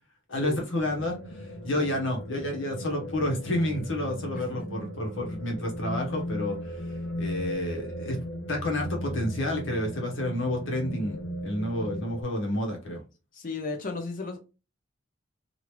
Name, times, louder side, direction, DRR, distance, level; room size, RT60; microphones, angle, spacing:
voice 1, 0.3-8.2 8.5-13.0, left 1 dB, 65° left, 1.1 m, -30 dB
sound 1, 0.8-12.2, equal, 85° left, 0.8 m, -37 dB
voice 2, 13.3-14.4, left 3 dB, 45° left, 0.5 m, -35 dB
3.1 x 2.4 x 3.1 m
head